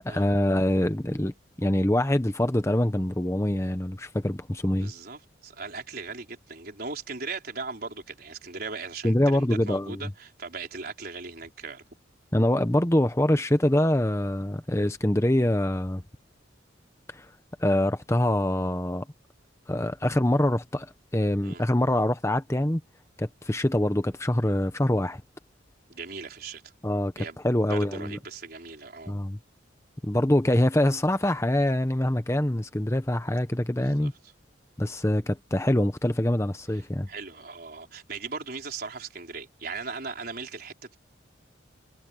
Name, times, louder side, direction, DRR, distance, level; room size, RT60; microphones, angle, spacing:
voice 1, 0.0-1.3 1.6-4.9 9.0-10.0 12.3-16.0 17.1-17.3 17.6-19.0 19.7-22.8 23.2-25.2 26.8-27.1 27.4-28.2 29.1-29.4 30.0-34.1 34.8-37.1, left 1 dB, 15° left, 1.0 m, -24 dB
voice 2, 4.8-11.8 21.4-21.6 25.9-26.7 27.2-27.4 27.7-29.1 33.8-34.1 37.1-41.0, right 4 dB, 55° right, 4.6 m, -38 dB
head